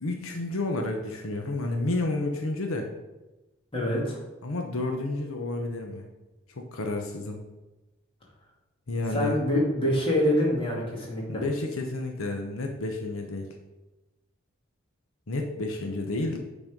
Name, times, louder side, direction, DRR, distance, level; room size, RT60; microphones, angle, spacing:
voice 1, 0.0-2.9 4.4-6.1 6.5-7.4 8.9-9.4 11.3-13.5 15.3-16.4, left 2 dB, 85° left, 3 dB, 0.9 m, -30 dB
voice 2, 3.7-4.2 9.1-11.4, left 1 dB, 25° left, -4 dB, 2.4 m, -25 dB
8.8 x 4.1 x 5.2 m, 1.1 s
head